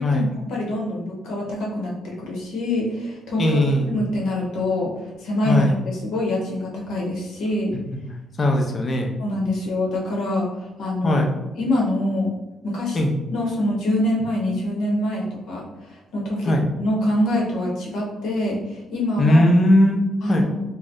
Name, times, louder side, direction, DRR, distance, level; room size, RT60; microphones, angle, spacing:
voice 1, 0.0-3.6 3.9-4.9 5.2-5.6 6.0-7.8 9.2-11.2 11.5-12.3 12.6-13.0 13.3-16.5 16.8-19.4 20.2-20.6, left 1 dB, 85° left, -2 dB, 0.8 m, -25 dB
voice 2, 3.4-3.9 5.4-5.7 7.9-8.0 8.4-9.1 11.0-11.3 12.9-13.1 16.4-16.7 19.2-20.5, left 1 dB, 35° left, 2 dB, 0.5 m, -19 dB
2.5 x 2.1 x 3.6 m, 1.0 s
cardioid pair, 90°, 0 cm